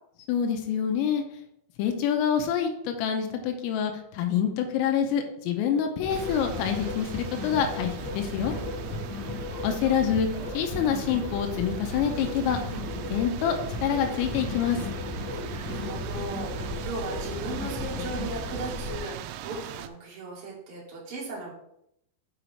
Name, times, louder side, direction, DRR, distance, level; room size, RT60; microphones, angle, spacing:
voice 1, 0.3-1.2 1.8-8.5 9.6-10.3 10.5-12.6 13.1-14.9, left 8 dB, 85° left, 4 dB, 3.4 m, -26 dB
sound 1, 6.0-19.0, left 2 dB, 25° left, 1.3 m, -35 dB
sound 2, 6.1-19.9, right 11 dB, 90° right, 3.3 m, -41 dB
voice 2, 15.4-21.5, right 2 dB, 40° right, -5 dB, 2.3 m, -37 dB
7.9 x 5.0 x 4.5 m, 0.77 s
omnidirectional pair, 5.9 m